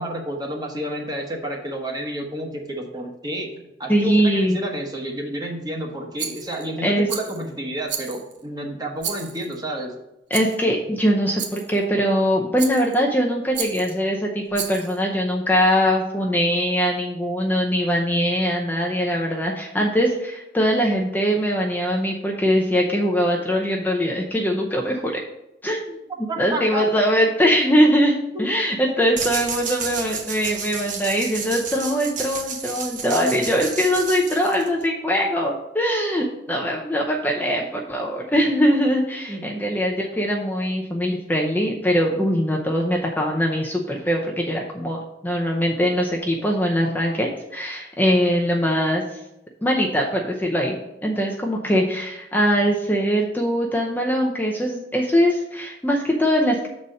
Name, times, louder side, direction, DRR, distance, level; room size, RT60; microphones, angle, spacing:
voice 1, 0.0-9.9 26.3-26.9 28.3-28.4 28.8-29.1 39.3-39.4, right 1 dB, 20° right, 2 dB, 1.1 m, -30 dB
voice 2, 3.9-4.6 6.8-7.1 10.3-25.1 25.6-26.0 26.4-49.0 49.6-50.8 51.0-56.7, equal, 10° left, -1 dB, 0.6 m, -22 dB
Rattle, 6.2-6.7 7.1-7.5 7.9-8.4 9.0-9.6 10.3-10.6 11.4-11.8 12.6-13.0 13.5-14.0 14.5-15.0, right 7 dB, 75° right, 0.9 m, -32 dB
sound 1, 29.2-34.9, right 5 dB, 45° right, 0.9 m, -31 dB
6.7 x 4.2 x 6.3 m, 0.90 s
head